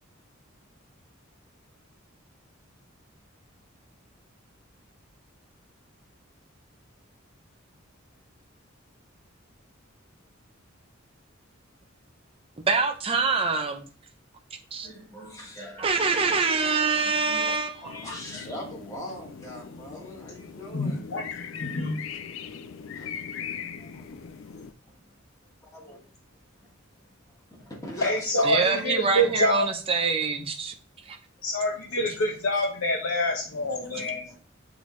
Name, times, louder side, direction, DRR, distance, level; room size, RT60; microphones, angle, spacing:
voice 1, 12.7-13.9 14.7-14.9 15.8-17.9 28.4-30.7 31.0-31.2, right 4 dB, 30° right, 5 dB, 0.6 m, -25 dB
voice 2, 14.8-15.9 16.9-21.0 22.6-23.1 23.8-24.1 24.4-25.1 25.6-26.1 26.6-26.7 27.2-29.4 31.9-32.0 33.8-34.4, left 1 dB, 15° left, -2 dB, 1.3 m, -41 dB
sound 1, 17.8-24.7, left 7 dB, 70° left, 0.4 m, -40 dB
voice 3, 20.7-22.0 28.0-29.6 31.4-34.4, left 1 dB, 85° left, -1 dB, 0.9 m, -26 dB
6.1 x 2.8 x 3.0 m, 0.38 s
head